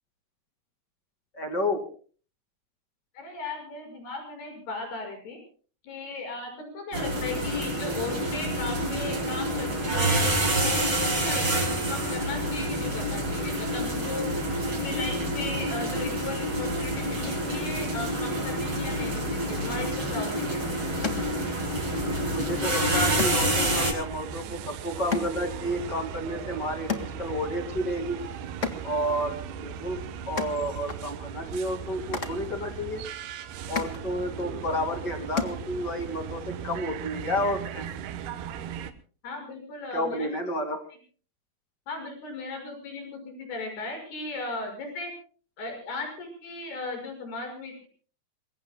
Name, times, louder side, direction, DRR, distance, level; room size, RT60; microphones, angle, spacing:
voice 1, 1.4-1.8 22.2-28.3 28.8-33.0 33.7-37.9 39.9-40.8, equal, 30° left, 5 dB, 2.4 m, -31 dB
voice 2, 3.1-5.4 5.8-14.3 14.8-20.7 39.2-40.4 41.9-45.1 45.6-47.9, left 3 dB, 85° left, 4 dB, 8.2 m, -37 dB
sound 1, 6.9-23.9, right 1 dB, 30° right, 6.3 m, -28 dB
sound 2, 20.1-36.2, left 5 dB, 45° left, 0.9 m, -39 dB
sound 3, 20.9-38.9, right 8 dB, 80° right, 3.1 m, -38 dB
27.0 x 22.0 x 2.2 m, 0.41 s
omnidirectional pair, 4.5 m